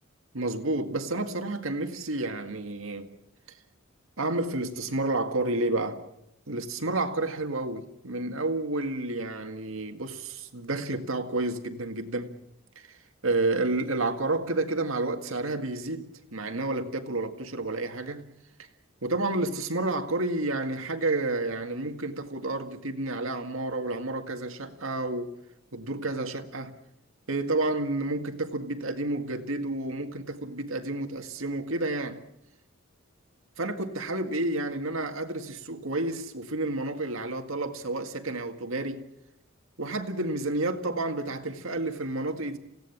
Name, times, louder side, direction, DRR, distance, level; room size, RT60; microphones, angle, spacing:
voice 1, 0.3-3.1 3.5-3.6 4.2-6.0 6.5-12.4 12.8-18.3 18.6-18.7 19.0-25.4 25.7-26.7 27.3-32.2 33.6-39.1 39.8-42.6, right 2 dB, 75° right, 2.0 m, -30 dB
28.5 x 17.0 x 7.3 m
head